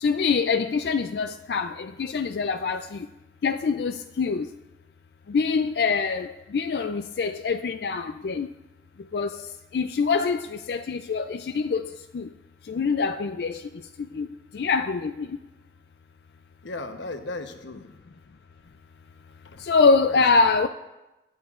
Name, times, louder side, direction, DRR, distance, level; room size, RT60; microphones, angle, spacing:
voice 1, 0.0-3.0 3.4-4.4 5.3-6.3 6.5-8.5 9.1-9.3 9.7-12.2 12.7-13.6 14.2-14.3 14.5-15.3 19.7-20.7, left 4 dB, 60° left, 0.3 m, -24 dB
voice 2, 16.6-18.0 19.4-19.6 20.1-20.5, left 2 dB, 80° left, 0.9 m, -37 dB
20.5 x 9.0 x 2.4 m
head